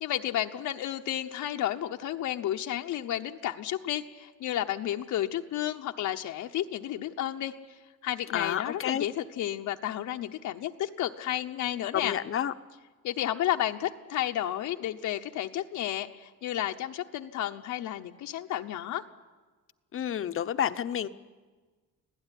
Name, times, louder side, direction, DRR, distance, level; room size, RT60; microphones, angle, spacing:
voice 1, 0.0-7.5 8.0-12.1 13.0-19.1, left 12 dB, 70° left, 4 dB, 0.9 m, -32 dB
voice 2, 8.3-9.1 11.9-12.5 19.9-21.1, left 9 dB, 40° left, 12 dB, 0.8 m, -29 dB
26.0 x 17.0 x 10.0 m, 1.4 s
cardioid pair, 155°, 31 cm